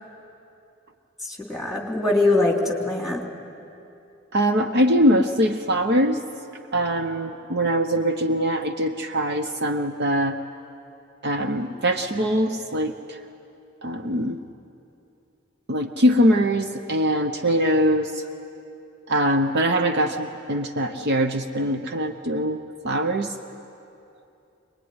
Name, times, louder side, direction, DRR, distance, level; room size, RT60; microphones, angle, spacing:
voice 1, 1.2-3.2, left 2 dB, ahead, 0 dB, 3.0 m, -22 dB
voice 2, 4.3-6.2 6.7-10.4 11.2-13.2 13.8-14.4 15.7-18.3 19.1-23.4, equal, 55° right, 6 dB, 0.9 m, -22 dB
24.5 x 21.0 x 9.8 m, 2.7 s
head